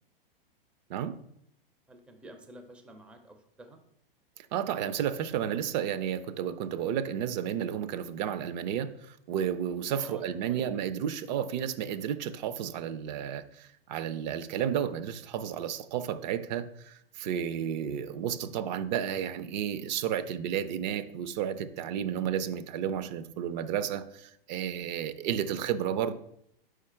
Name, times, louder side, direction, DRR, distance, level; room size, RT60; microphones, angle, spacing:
voice 1, 1.9-3.8 8.0-8.2 9.9-10.9 25.2-25.6, right 1 dB, 5° right, 6 dB, 0.5 m, -51 dB
voice 2, 4.5-26.1, right 9 dB, 50° right, 12 dB, 0.6 m, -32 dB
4.9 x 4.8 x 4.4 m, 0.73 s
hypercardioid pair, 115°, 29 cm